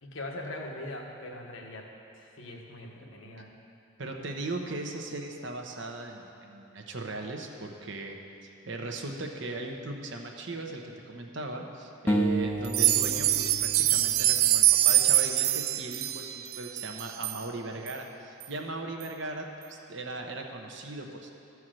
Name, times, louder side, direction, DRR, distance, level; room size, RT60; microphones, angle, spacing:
voice 1, 0.0-3.5, left 1 dB, 70° left, 0 dB, 1.2 m, -41 dB
voice 2, 4.0-21.3, right 2 dB, 60° right, 2 dB, 1.0 m, -38 dB
sound 1, 12.1-15.3, right 1 dB, 10° left, 0.4 m, -32 dB
sound 2, 12.6-17.4 17.9-18.0 18.4-18.5 19.0-19.1, right 14 dB, 85° right, 0.4 m, -24 dB
13.0 x 4.7 x 7.6 m, 2.6 s
head